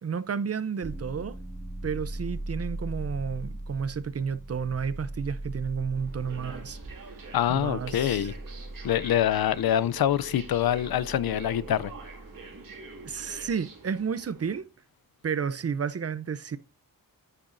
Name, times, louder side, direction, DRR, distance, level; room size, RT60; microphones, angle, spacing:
voice 1, 0.0-1.4 1.8-8.3 13.0-14.7 15.2-16.6, right 6 dB, 45° right, 0.6 m, -32 dB
sound 1, 0.8-13.5, right 1 dB, 20° right, 1.4 m, -40 dB
sound 2, 5.9-14.6, right 4 dB, 65° right, 2.2 m, -45 dB
voice 2, 7.3-8.3 8.8-11.9, left 11 dB, 85° left, 0.5 m, -25 dB
9.8 x 9.0 x 2.6 m
wide cardioid pair, 150°, 35 cm